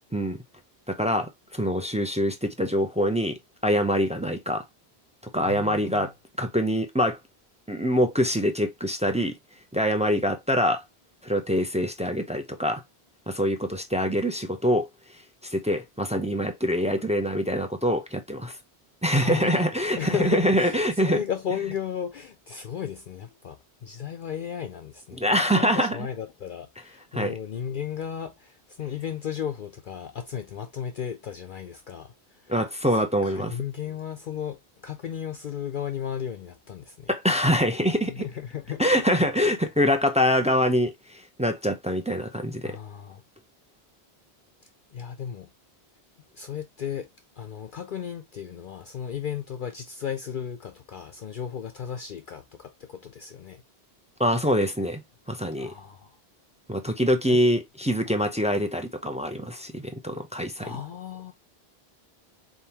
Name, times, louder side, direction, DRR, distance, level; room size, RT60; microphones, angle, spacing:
voice 1, 0.9-4.7 5.3-6.1 6.4-7.2 7.7-9.4 9.7-10.8 11.2-12.8 13.3-14.9 15.4-18.6 19.0-21.2 25.2-26.0 27.1-27.3 32.5-33.5 37.1-38.3 38.8-42.8 54.2-55.0 55.3-55.7 56.7-60.7, equal, 10° right, 0.5 m, -24 dB
voice 2, 5.4-6.1 19.2-19.7 20.0-25.3 25.5-37.1 38.0-39.1 42.6-43.2 44.9-45.5 46.3-47.1 47.4-53.6 55.6-56.2 57.3-57.4 58.1-58.2 60.6-61.3, left 8 dB, 55° left, 0.7 m, -35 dB
3.8 x 3.7 x 2.8 m
omnidirectional pair, 1.1 m